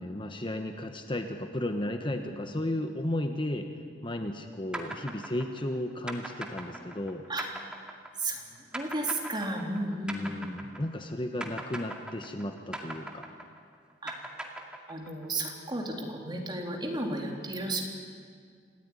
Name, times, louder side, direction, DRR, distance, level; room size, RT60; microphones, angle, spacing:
voice 1, 0.0-3.7 4.0-7.2 10.1-13.3, left 1 dB, 30° left, 6 dB, 1.2 m, -34 dB
sound 1, 4.7-11.1 11.4-15.3, right 1 dB, 5° right, 2.1 m, -40 dB
voice 2, 8.2-10.5 14.0-14.2 14.9-17.8, right 2 dB, 25° right, 1 dB, 3.4 m, -33 dB
27.0 x 15.0 x 9.9 m, 2.1 s
head